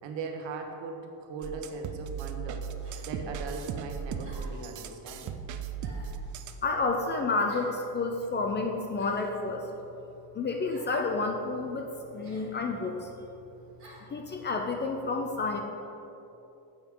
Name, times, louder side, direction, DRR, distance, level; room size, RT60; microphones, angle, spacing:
voice 1, 0.0-2.7 3.0-5.3, right 4 dB, 70° right, 3 dB, 1.2 m, -39 dB
sound 1, 1.4-1.6 2.8-3.1 4.2-4.6 5.8-6.2 7.5-7.8 8.9-9.4 10.7-11.0 12.2-12.5 13.8-14.1, right 2 dB, 30° right, 2.0 m, -51 dB
sound 2, 1.4-6.7, right 6 dB, 45° right, 0.4 m, -37 dB
voice 2, 6.6-9.7 10.3-11.9 12.1-13.1 14.1-15.6, left 3 dB, 25° left, 3 dB, 0.3 m, -30 dB
9.3 x 7.8 x 3.7 m, 2.9 s
cardioid pair, 175°, 44 cm